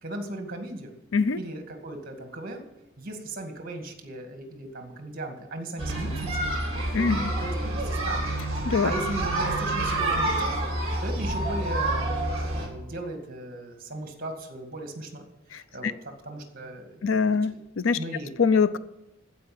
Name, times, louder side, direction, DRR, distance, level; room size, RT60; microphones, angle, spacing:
voice 1, 0.0-1.0 1.4-2.6 3.0-10.6 11.0-15.3 15.7-17.1 17.5-17.6 18.0-18.3, right 1 dB, 45° right, 4 dB, 2.2 m, -37 dB
sound 1, 5.8-12.7, right 2 dB, 30° right, 3.2 m, -28 dB
voice 2, 15.5-15.9 17.0-18.0 18.4-18.8, left 5 dB, 70° left, 15 dB, 0.5 m, -23 dB
15.0 x 5.2 x 8.8 m, 0.92 s
head